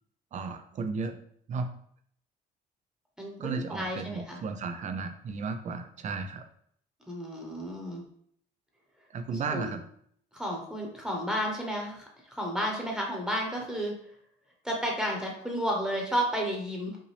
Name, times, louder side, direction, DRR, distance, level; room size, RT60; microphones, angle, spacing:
voice 1, 0.3-1.2 1.5-1.7 3.4-6.4 9.1-9.8, right 4 dB, 45° right, 8 dB, 0.6 m, -34 dB
voice 2, 3.2-4.4 7.1-8.0 9.5-9.7 10.3-14.0 14.6-17.0, equal, 5° right, -1 dB, 1.1 m, -32 dB
5.4 x 2.7 x 3.3 m, 0.65 s
cardioid pair, 110°, 17 cm